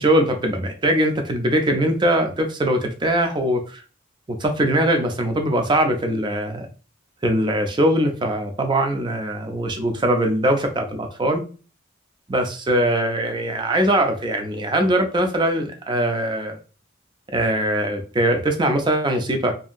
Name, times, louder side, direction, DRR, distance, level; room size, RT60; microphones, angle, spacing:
voice 1, 0.0-3.8 4.3-6.7 7.2-11.4 12.3-16.6 17.3-19.5, right 1 dB, 20° right, 5 dB, 0.4 m, -21 dB
2.7 x 2.5 x 2.4 m, 0.37 s
head